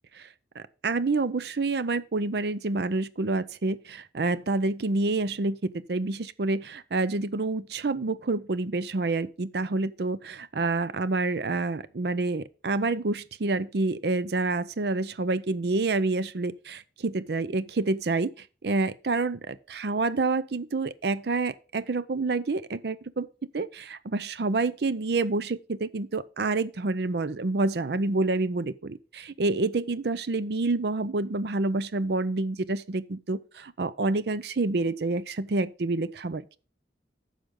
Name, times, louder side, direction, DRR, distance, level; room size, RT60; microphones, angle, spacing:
voice 1, 0.6-23.3 23.5-36.6, right 3 dB, 65° right, 0.6 m, -28 dB
10.0 x 6.5 x 3.7 m
head